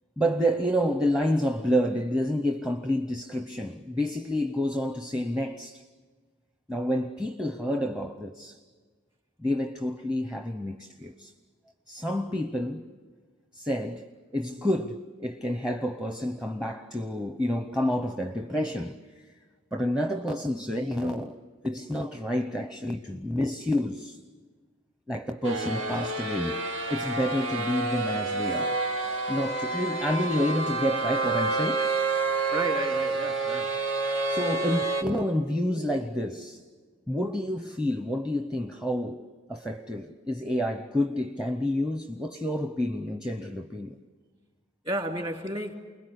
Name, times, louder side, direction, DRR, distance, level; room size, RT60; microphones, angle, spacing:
voice 1, 0.2-5.8 6.7-8.6 9.4-11.3 11.9-12.9 13.5-14.1 14.3-19.0 19.7-21.4 21.6-24.2 25.1-26.6 26.9-28.8 29.3-31.8 34.1-36.6 37.1-43.9, equal, 5° right, 0.8 m, -29 dB
sound 1, 25.4-35.0, right 3 dB, 80° right, 2.3 m, -29 dB
voice 2, 32.5-33.7 44.8-45.7, right 1 dB, 30° right, 3.0 m, -32 dB
29.0 x 21.0 x 8.2 m
head